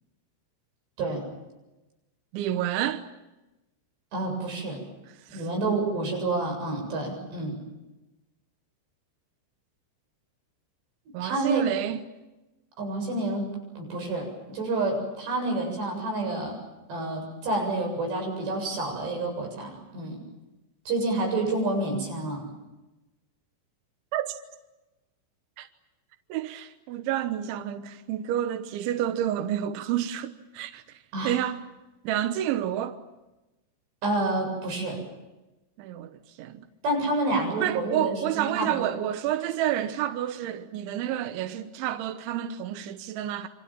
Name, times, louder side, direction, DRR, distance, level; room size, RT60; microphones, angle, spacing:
voice 1, 2.3-3.0 5.3-5.5 11.1-12.0 24.1-24.4 25.6-25.7 26.3-31.0 31.2-31.6 32.0-33.0 35.8-36.7 37.6-43.5, right 11 dB, 80° right, 3.5 m, -29 dB
voice 2, 4.1-4.8 5.3-7.6 11.2-11.7 12.8-13.5 13.8-16.5 16.9-20.2 20.9-22.5 31.1-31.3 34.0-35.0 36.8-38.9, right 2 dB, 65° right, 9.8 m, -28 dB
29.0 x 25.0 x 7.4 m
omnidirectional pair, 5.3 m